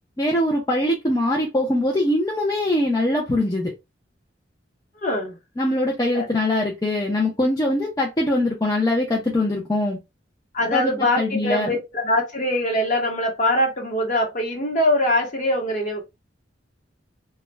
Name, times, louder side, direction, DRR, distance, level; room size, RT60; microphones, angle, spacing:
voice 1, 0.2-3.7 5.6-10.0 10.7-11.7, left 1 dB, 20° left, 0.5 m, -22 dB
voice 2, 4.9-5.4 6.1-6.3 10.5-16.0, left 1 dB, 45° left, 1.0 m, -22 dB
2.3 x 2.1 x 3.1 m
head